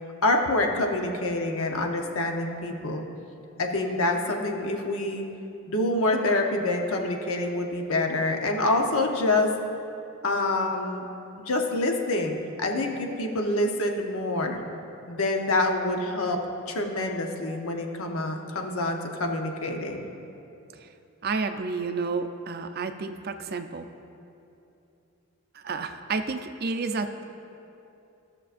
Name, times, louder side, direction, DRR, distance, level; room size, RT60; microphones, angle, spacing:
voice 1, 0.2-3.0 3.6-5.2 5.7-9.5 10.2-11.0 11.4-14.6 15.1-16.4 16.7-20.1, left 2 dB, 75° left, 3 dB, 0.8 m, -26 dB
voice 2, 21.2-23.9 25.5-27.1, right 4 dB, 45° right, 8 dB, 0.4 m, -30 dB
16.5 x 6.2 x 2.5 m, 2.7 s
head